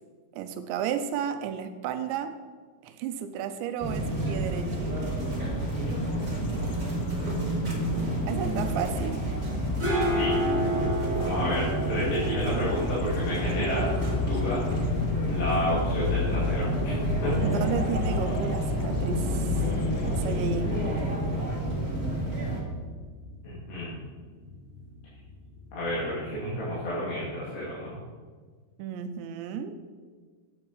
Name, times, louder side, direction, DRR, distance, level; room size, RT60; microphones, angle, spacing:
voice 1, 0.3-2.3 2.8-4.9 8.3-9.2 17.4-19.6 20.1-20.8 28.8-29.8, right 8 dB, 90° right, 8 dB, 3.0 m, -33 dB
sound 1, 3.8-22.6, right 1 dB, 50° right, 1.0 m, -30 dB
sound 2, 4.1-21.7, left 6 dB, 90° left, 2.9 m, -34 dB
voice 2, 7.6-8.7 10.2-10.3 11.2-13.9 14.3-14.7 15.3-16.9 17.2-17.4 23.4-23.9 25.7-28.0, equal, 70° left, -9 dB, 4.4 m, -31 dB
sound 3, 9.4-26.8, right 1 dB, 5° right, 1.3 m, -35 dB
9.2 x 8.8 x 4.7 m, 1.5 s
omnidirectional pair, 5.1 m